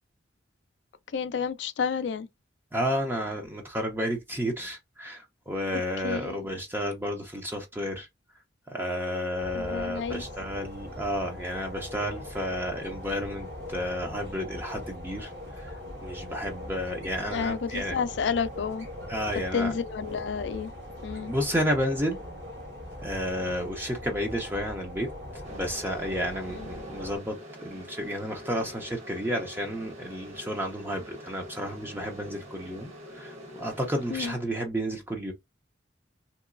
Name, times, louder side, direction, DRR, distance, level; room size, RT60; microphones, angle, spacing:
voice 1, 1.1-2.3 5.7-6.4 9.5-10.2 17.3-18.9 19.5-20.7 21.0-21.3 26.5-26.7 34.1-34.3, left 6 dB, 70° left, 0.4 m, -30 dB
voice 2, 2.7-8.1 8.7-15.7 16.0-18.0 19.1-19.7 21.3-22.2 23.0-25.1 25.5-35.3, equal, 10° right, 0.5 m, -31 dB
sound 1, 9.4-27.2, left 1 dB, 60° right, 1.3 m, -41 dB
sound 2, 25.4-34.3, equal, 35° right, 1.1 m, -45 dB
3.0 x 2.9 x 2.4 m
head